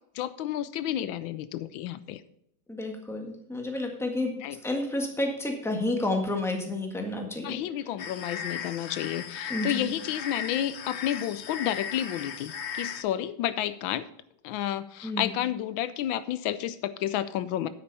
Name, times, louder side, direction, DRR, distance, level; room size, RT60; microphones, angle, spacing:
voice 1, 0.1-2.2 4.4-4.6 7.4-14.1 14.4-17.7, left 11 dB, 85° left, 14 dB, 1.4 m, -31 dB
voice 2, 2.7-4.3 4.6-7.6 9.5-9.9 15.0-15.3, left 2 dB, ahead, 2 dB, 1.5 m, -30 dB
sound 1, 8.0-13.0, left 7 dB, 70° left, 0.6 m, -37 dB
9.8 x 8.7 x 4.1 m, 0.77 s
omnidirectional pair, 2.1 m